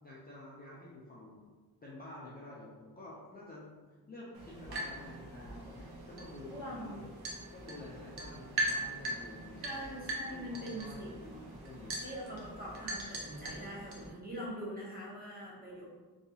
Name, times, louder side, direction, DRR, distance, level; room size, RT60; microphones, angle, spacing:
voice 1, 0.0-1.5 1.8-3.7 4.1-7.2 7.5-9.8 10.3-12.0, left 2 dB, 25° left, -7 dB, 0.3 m, -50 dB
sound 1, 4.3-14.1, right 1 dB, 80° right, 0.6 m, -41 dB
voice 2, 6.5-7.0 9.6-11.4 12.0-15.9, equal, 25° right, -6 dB, 0.7 m, -43 dB
2.8 x 2.3 x 2.7 m, 1.3 s
wide cardioid pair, 170°, 38 cm